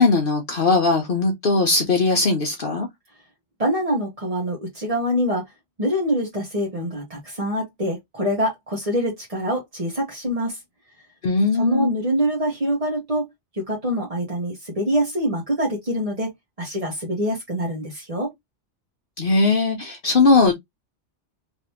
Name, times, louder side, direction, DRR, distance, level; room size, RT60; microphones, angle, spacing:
voice 1, 0.0-2.9 11.2-11.9 19.2-20.5, left 3 dB, 55° left, 0.9 m, -19 dB
voice 2, 3.6-5.4 5.8-10.6 11.6-13.3 13.6-16.3 16.6-18.3, equal, 30° right, 1.1 m, -25 dB
3.3 x 2.9 x 2.7 m
omnidirectional pair, 1.2 m